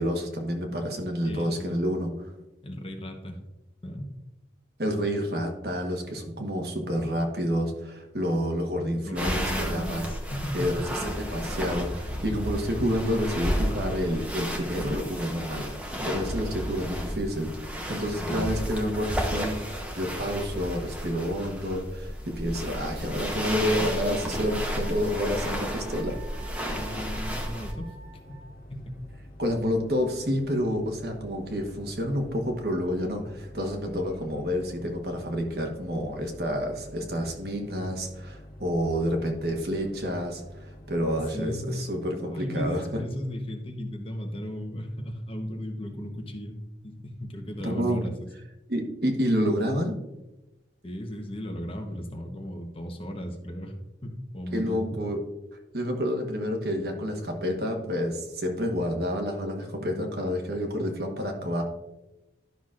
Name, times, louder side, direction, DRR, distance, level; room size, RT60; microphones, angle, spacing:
voice 1, 0.0-2.3 4.8-10.1 10.5-26.2 29.4-43.0 47.6-48.1 48.7-49.9 54.5-55.2 55.7-61.6, equal, 55° right, 3 dB, 1.3 m, -29 dB
voice 2, 1.2-1.9 2.6-3.4 3.8-4.1 8.9-10.8 18.2-18.5 26.8-27.9 28.3-28.4 28.7-29.0 41.2-41.7 42.2-48.3 50.8-53.8 54.0-54.8, equal, 30° left, 3 dB, 0.9 m, -36 dB
sound 1, 9.1-27.7, equal, 5° right, 0.9 m, -32 dB
Wind instrument woodwind instrument, 23.7-28.6, right 1 dB, 40° right, 0.8 m, -47 dB
sound 2, 27.8-41.1, left 1 dB, 50° left, 1.2 m, -47 dB
12.0 x 6.1 x 2.5 m, 0.99 s
head